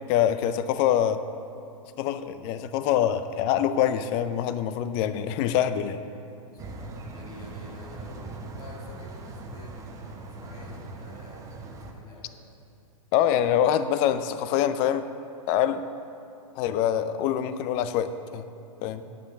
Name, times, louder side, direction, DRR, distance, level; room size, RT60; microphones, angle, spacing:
voice 1, 0.1-1.2 2.0-6.0 13.1-15.1 15.5-15.8 16.6-18.5 18.8-19.0, left 10 dB, 30° left, 12 dB, 0.4 m, -25 dB
voice 2, 6.5-12.3 18.8-19.1, left 1 dB, 80° left, -2 dB, 2.0 m, -47 dB
sound 1, 6.6-11.9, right 2 dB, 15° right, 0.7 m, -41 dB
9.6 x 5.7 x 6.6 m, 2.8 s
hypercardioid pair, 140°, 19 cm